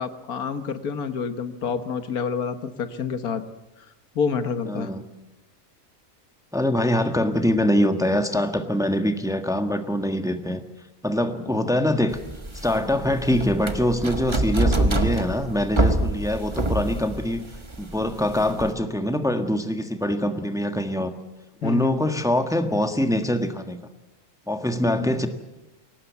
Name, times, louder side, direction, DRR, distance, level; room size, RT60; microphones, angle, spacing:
voice 1, 0.0-3.4 4.2-4.9 21.6-22.1 24.8-25.1, left 6 dB, 85° left, 10 dB, 1.8 m, -28 dB
voice 2, 4.6-5.0 6.5-10.6 11.0-12.2 12.5-17.4 17.8-21.1 21.6-23.8 24.5-25.3, left 1 dB, ahead, 7 dB, 1.3 m, -24 dB
sound 1, 12.1-18.7, right 2 dB, 20° right, 1.4 m, -26 dB
22.5 x 18.5 x 8.2 m, 0.98 s
omnidirectional pair, 1.5 m